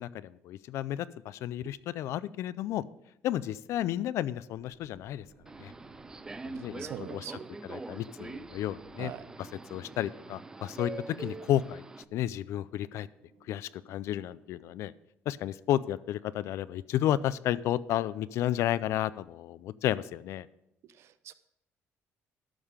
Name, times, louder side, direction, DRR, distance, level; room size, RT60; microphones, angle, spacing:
voice 1, 0.0-2.8 3.2-5.3 5.6-5.7 6.4-7.2 7.6-9.1 9.7-11.8 12.1-13.1 13.5-14.9 15.3-20.5, left 12 dB, 75° left, 18 dB, 0.4 m, -32 dB
sound 1, 4.5-14.9, right 4 dB, 85° right, 2.5 m, -60 dB
Subway metro underground, 5.5-12.0, right 3 dB, 15° right, 0.3 m, -44 dB
voice 2, 6.8-7.5 9.0-9.3 21.0-21.3, right 10 dB, 65° right, 14 dB, 0.6 m, -42 dB
12.5 x 5.6 x 5.0 m, 0.82 s
cardioid pair, 145°, 5 cm